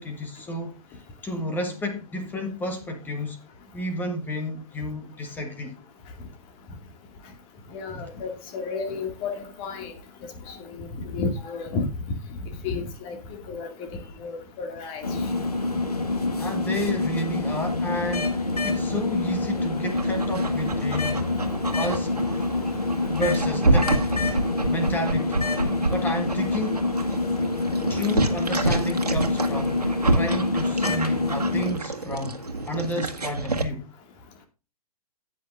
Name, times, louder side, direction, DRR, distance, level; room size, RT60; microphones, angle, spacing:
voice 1, 0.0-3.4 3.7-5.8 16.4-21.2 21.7-22.2 23.0-24.0 24.7-25.4 25.9-26.9 27.9-33.9, left 1 dB, 10° left, 1.4 m, -31 dB
voice 2, 7.7-9.9 10.5-11.9 12.6-13.2 13.5-15.1, left 4 dB, 25° left, 2.1 m, -32 dB
sound 1, 15.0-31.7, left 2 dB, 80° left, 1.9 m, -26 dB
Dog, 19.8-33.6, right 2 dB, 80° right, 1.8 m, -29 dB
17.5 x 6.3 x 2.5 m
figure-of-eight pair, 120°, 20 cm